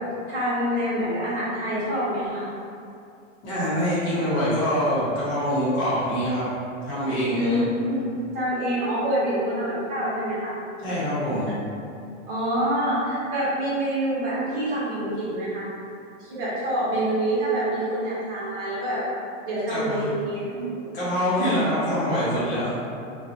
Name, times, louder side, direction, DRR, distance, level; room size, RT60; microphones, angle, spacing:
voice 1, 0.3-2.5 7.3-8.0 8.3-10.5 12.3-15.7 16.2-19.0 19.5-21.0, right 1 dB, 45° right, -8 dB, 1.1 m, -26 dB
voice 2, 3.4-6.5 6.8-7.6 10.8-11.5 19.7-20.1 20.5-20.7 20.9-22.9, equal, 30° left, -11 dB, 1.1 m, -25 dB
2.6 x 2.4 x 2.5 m, 2.5 s
supercardioid pair, 155°, 38 cm